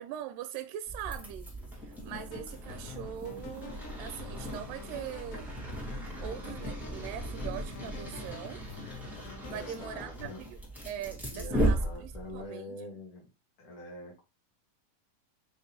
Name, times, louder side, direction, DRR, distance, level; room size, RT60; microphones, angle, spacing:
voice 1, 0.0-1.5 1.8-5.5 6.2-8.6 9.5-10.6 10.9-12.8, right 10 dB, 80° right, 2.1 m, -41 dB
sound 1, 0.9-12.4, right 1 dB, ahead, 0.8 m, -36 dB
sound 2, 2.1-10.4, left 6 dB, 90° left, 2.5 m, -49 dB
sound 3, 3.1-9.6, equal, 60° right, 2.4 m, -54 dB
voice 2, 9.5-10.4 11.3-13.3 13.6-14.2, left 1 dB, 60° left, 1.5 m, -45 dB
5.3 x 3.3 x 2.9 m
omnidirectional pair, 3.9 m